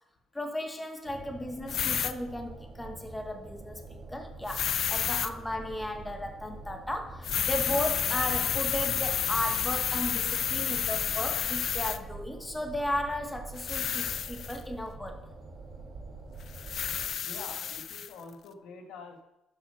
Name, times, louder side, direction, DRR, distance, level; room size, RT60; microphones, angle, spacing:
voice 1, 0.3-15.2, left 1 dB, 10° left, 4 dB, 1.5 m, -35 dB
sound 1, 1.0-17.1, right 3 dB, 60° right, 2.4 m, -45 dB
sound 2, 1.7-2.1 4.5-5.3 7.2-12.0 13.6-14.6 16.5-18.1, left 9 dB, 60° left, 0.5 m, -30 dB
voice 2, 17.2-19.2, left 4 dB, 85° left, 4 dB, 1.5 m, -45 dB
10.5 x 7.3 x 5.5 m, 0.92 s
cardioid pair, 105°, 0 cm